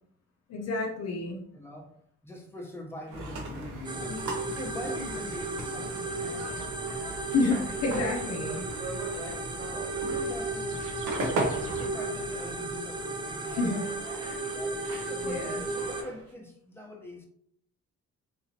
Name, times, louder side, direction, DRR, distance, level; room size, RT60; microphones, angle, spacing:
voice 1, 0.5-1.4 7.3-8.7 13.5-13.9 14.2-14.4 15.2-15.6, left 3 dB, 55° left, 0 dB, 0.7 m, -29 dB
voice 2, 1.5-1.9 2.2-6.7 9.1-9.5 10.0-10.8 11.1-13.8 14.5-14.8 15.1-17.3, left 1 dB, 10° left, 0 dB, 0.9 m, -44 dB
sound 1, 3.1-16.3, right 2 dB, 50° right, 0.8 m, -46 dB
sound 2, 3.1-11.9, right 1 dB, 80° right, 0.9 m, -37 dB
sound 3, 3.8-16.0, right 2 dB, 15° right, 0.4 m, -34 dB
3.7 x 2.8 x 2.8 m, 0.67 s
cardioid pair, 90°, 30 cm